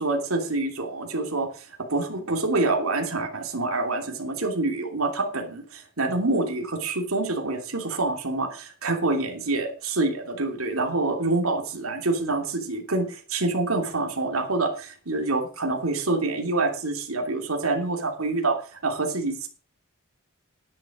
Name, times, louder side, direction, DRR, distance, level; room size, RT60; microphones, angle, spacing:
voice 1, 0.0-18.6 18.8-19.5, right 2 dB, 70° right, 2 dB, 2.9 m, -26 dB
11.0 x 10.5 x 5.1 m, 0.38 s
head